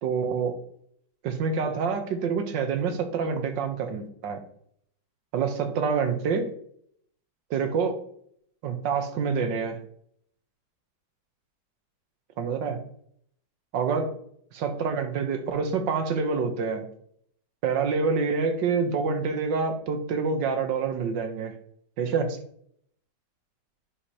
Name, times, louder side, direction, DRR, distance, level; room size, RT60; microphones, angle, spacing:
voice 1, 0.0-0.5 1.2-4.4 5.3-6.5 7.5-8.0 8.6-9.8 12.4-12.8 13.7-14.1 14.5-16.9 17.6-21.5 22.0-22.4, right 5 dB, 85° right, 7 dB, 1.7 m, -27 dB
10.5 x 4.9 x 2.9 m, 0.66 s
omnidirectional pair, 1.9 m